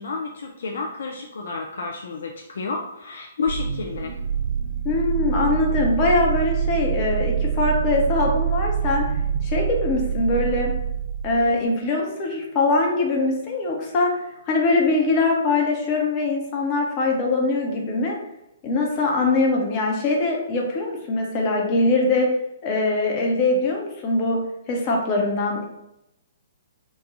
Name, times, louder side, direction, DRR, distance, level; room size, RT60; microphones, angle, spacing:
voice 1, 0.0-4.1, left 4 dB, 60° left, 1 dB, 0.4 m, -30 dB
sound 1, 3.5-11.7, right 8 dB, 40° right, 0.8 m, -25 dB
voice 2, 4.8-9.1 9.4-10.7 11.2-14.2 14.5-18.2 18.6-22.3 22.6-24.4 24.7-25.6, left 2 dB, 30° left, 0 dB, 0.8 m, -22 dB
3.0 x 2.3 x 3.6 m, 0.86 s
figure-of-eight pair, 120°, 0 cm